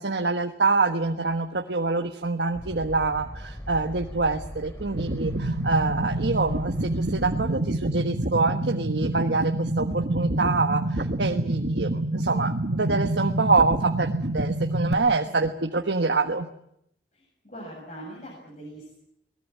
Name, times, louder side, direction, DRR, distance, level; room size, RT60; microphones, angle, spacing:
voice 1, 0.0-16.5, right 3 dB, 80° right, 5 dB, 1.4 m, -26 dB
sound 1, 2.5-7.5, equal, 15° left, 2.5 m, -39 dB
sound 2, 4.9-14.9, right 1 dB, 60° right, 1.4 m, -27 dB
voice 2, 17.1-19.0, right 1 dB, 40° left, -2 dB, 7.3 m, -42 dB
22.5 x 20.0 x 9.4 m, 0.74 s
head